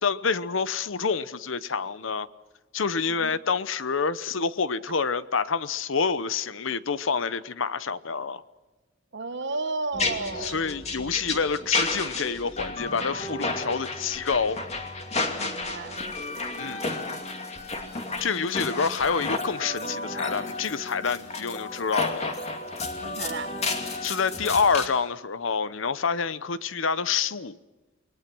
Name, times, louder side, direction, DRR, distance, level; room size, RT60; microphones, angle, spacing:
voice 1, 0.0-2.3 2.7-8.4 10.4-14.6 16.6-16.8 18.2-22.4 24.0-27.6, left 5 dB, 70° left, 0.9 m, -27 dB
voice 2, 9.1-10.7 15.4-16.1 23.0-23.5, right 3 dB, 60° right, 1.5 m, -33 dB
sound 1, 9.9-24.9, left 3 dB, 35° left, 2.5 m, -32 dB
29.0 x 21.0 x 6.1 m
head